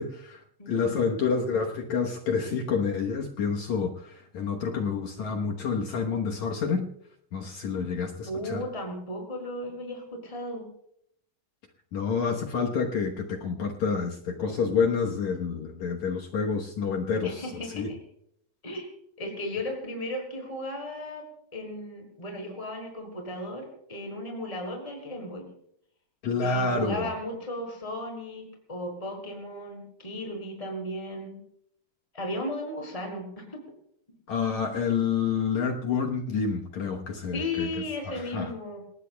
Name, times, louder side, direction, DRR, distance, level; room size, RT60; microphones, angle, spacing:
voice 1, 0.0-0.4 0.7-6.9 7.3-8.6 11.9-17.4 17.7-17.9 26.2-27.1 34.3-37.7 38.1-38.5, left 5 dB, 65° left, 2 dB, 1.9 m, -28 dB
voice 2, 0.6-1.0 8.3-10.7 17.2-18.0 18.6-18.9 19.2-21.2 21.5-25.5 26.4-31.4 32.1-33.6 37.3-38.8, left 1 dB, 10° left, 1 dB, 4.6 m, -35 dB
27.5 x 19.0 x 2.3 m, 0.71 s
omnidirectional pair, 4.6 m